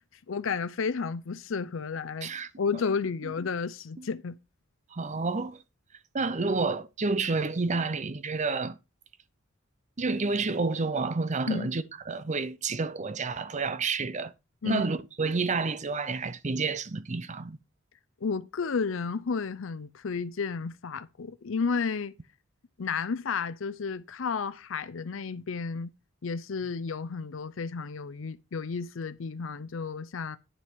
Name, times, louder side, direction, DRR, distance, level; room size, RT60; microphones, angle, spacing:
voice 1, 0.3-2.3 2.6-4.4 11.5-11.7 14.6-14.9 18.2-22.1 22.8-25.9 26.2-30.4, left 5 dB, 70° left, 0.5 m, -32 dB
voice 2, 4.9-5.6 6.1-8.8 10.0-14.3 14.6-17.6, right 4 dB, 35° right, 0.6 m, -29 dB
9.8 x 5.7 x 4.5 m
head